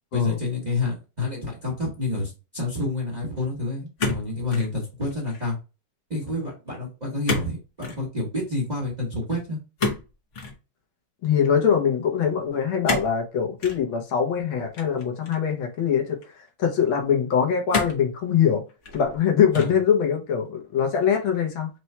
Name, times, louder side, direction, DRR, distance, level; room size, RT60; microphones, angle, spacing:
voice 1, 0.1-5.6 6.1-9.6 19.5-19.7, left 2 dB, 30° right, 0.9 m, -28 dB
sound 1, 4.0-4.7 5.1-5.5 7.3-7.5 7.8-8.0 9.8-10.6 12.8-13.2 13.6-13.8 14.7-15.5 16.2-16.3 17.7-18.1 18.7-19.2 19.5-19.9, left 3 dB, 50° left, 1.0 m, -29 dB
voice 2, 11.2-16.2 16.6-18.6 18.9-21.7, left 7 dB, 70° left, 1.7 m, -23 dB
4.4 x 2.3 x 4.1 m
omnidirectional pair, 2.4 m